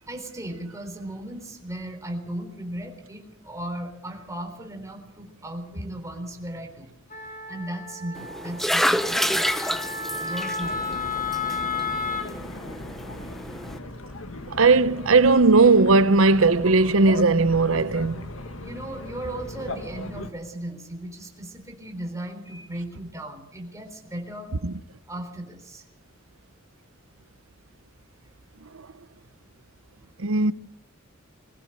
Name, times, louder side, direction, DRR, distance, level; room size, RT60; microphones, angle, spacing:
voice 1, 0.0-9.8 10.2-11.3 14.0-14.2 18.6-24.5 25.1-25.8 28.2-28.3, right 1 dB, 15° right, 3.8 m, -37 dB
Wind instrument woodwind instrument, 7.1-12.3, left 4 dB, 40° left, 3.7 m, -32 dB
sound 1, 8.2-13.8, equal, ahead, 0.8 m, -29 dB
sound 2, 10.6-20.3, left 2 dB, 75° left, 2.1 m, -38 dB
voice 2, 14.5-18.3 30.2-30.5, right 3 dB, 70° right, 0.8 m, -18 dB
22.0 x 16.0 x 7.8 m
head